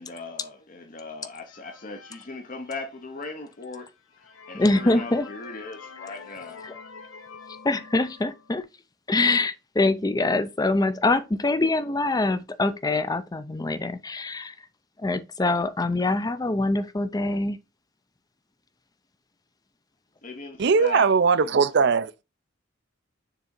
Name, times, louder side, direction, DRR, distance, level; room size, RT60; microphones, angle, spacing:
voice 1, 0.0-6.6 20.2-21.1, left 3 dB, 40° left, 0.8 m, -39 dB
sound 1, 1.4-3.1 3.6-3.7 4.1-8.6, left 5 dB, 80° left, 0.9 m, -46 dB
voice 2, 4.5-5.3 6.6-6.7 7.6-8.6 9.1-14.5 15.0-17.6, left 2 dB, 20° left, 0.5 m, -24 dB
voice 3, 20.6-22.2, right 5 dB, 60° right, 0.5 m, -20 dB
6.8 x 3.7 x 4.4 m
head